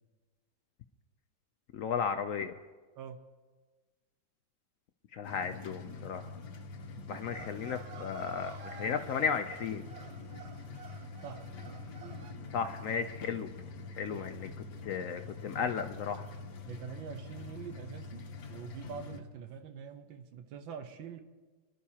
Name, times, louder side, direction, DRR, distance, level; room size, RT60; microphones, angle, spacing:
voice 1, 1.7-2.6 5.1-6.4 7.1-9.8 12.5-13.5 13.9-14.5 14.8-16.3, left 6 dB, 90° left, 7 dB, 0.7 m, -34 dB
sound 1, 5.2-19.2, left 3 dB, 55° left, 1.4 m, -45 dB
sound 2, 7.1-12.3, right 6 dB, 75° right, 0.6 m, -51 dB
voice 2, 16.7-21.2, right 7 dB, 90° right, 7 dB, 1.7 m, -45 dB
25.0 x 11.0 x 2.8 m, 1.4 s
omnidirectional pair, 2.1 m